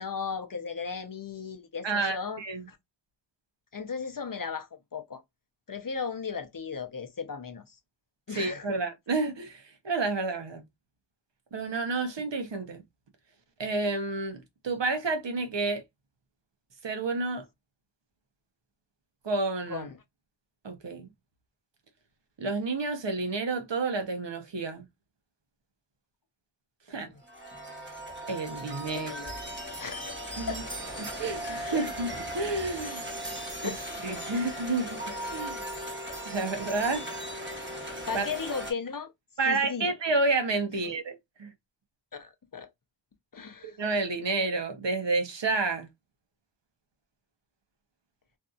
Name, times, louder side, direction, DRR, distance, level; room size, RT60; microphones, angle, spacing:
voice 1, 0.0-2.4 2.7-2.8 3.7-5.2 5.7-7.8 8.3-8.8 19.7-20.0 26.9-27.2 28.9-29.5 29.8-31.0 31.6-31.9 33.6-33.8 34.3-34.4 38.1-39.1 39.4-39.9 40.7-40.8 42.1-42.7 43.3-43.8, left 5 dB, 45° left, 0.7 m, -36 dB
voice 2, 1.8-2.7 8.3-10.6 11.5-12.8 13.6-15.8 16.8-17.4 19.2-19.9 20.6-21.1 22.4-24.9 26.9-27.1 28.3-29.3 30.4-30.5 31.0-32.1 32.3-33.0 33.6-33.7 34.0-35.0 35.3-35.6 36.3-37.1 38.1-38.3 39.4-41.5 43.6-45.9, right 3 dB, 65° right, 0.8 m, -30 dB
sound 1, 27.2-38.7, equal, 25° right, 1.1 m, -37 dB
2.7 x 2.5 x 2.3 m
wide cardioid pair, 40°, 46 cm